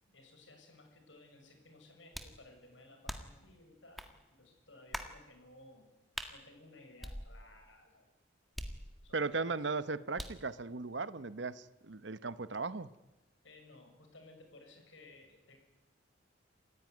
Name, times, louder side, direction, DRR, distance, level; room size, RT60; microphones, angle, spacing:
voice 1, 0.0-5.9 6.3-8.1 9.0-9.7 13.4-15.6, left 2 dB, 70° left, 4 dB, 7.0 m, -58 dB
sound 1, 2.1-2.4 3.1-3.4 4.0-4.1 4.9-5.2 6.1-6.3 7.0-7.7 8.6-9.2 10.2-10.5, equal, ahead, 1.8 m, -43 dB
voice 2, 9.1-12.9, right 4 dB, 60° right, 14 dB, 0.9 m, -37 dB
28.5 x 16.0 x 9.7 m, 1.0 s
head